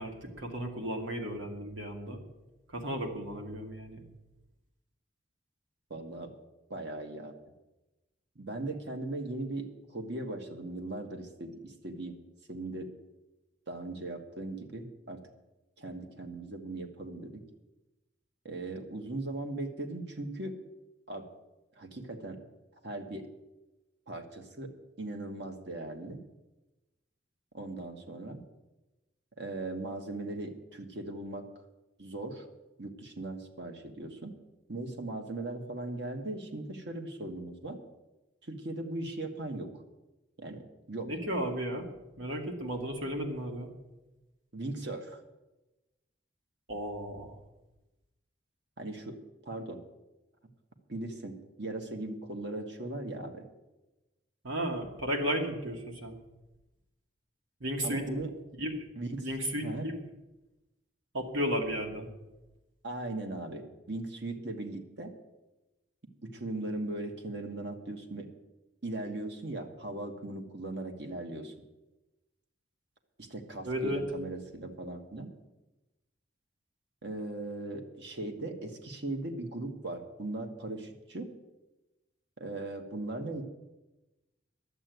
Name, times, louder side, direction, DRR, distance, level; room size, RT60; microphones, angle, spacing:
voice 1, 0.0-2.2 2.7-4.0 41.0-41.9 42.2-43.7 46.7-47.4 54.4-56.2 57.6-58.0 58.6-58.7 59.2-60.0 61.1-62.1 73.6-74.0, equal, 80° right, 2 dB, 2.3 m, -34 dB
voice 2, 5.9-6.3 6.7-7.3 8.3-12.1 12.5-12.9 13.7-15.2 15.8-17.4 18.4-20.6 21.1-21.3 21.8-22.4 22.8-23.3 24.1-26.2 27.5-28.4 29.4-31.4 32.0-32.5 32.8-34.3 34.7-37.8 38.4-39.7 40.4-41.1 44.5-45.2 48.8-49.8 50.9-53.5 57.8-58.3 59.0-59.3 59.6-59.9 62.8-65.1 66.2-68.3 68.8-71.5 73.2-75.3 77.0-81.3 82.4-83.4, right 2 dB, 60° right, 5 dB, 1.6 m, -38 dB
11.5 x 8.0 x 9.3 m, 1.0 s
head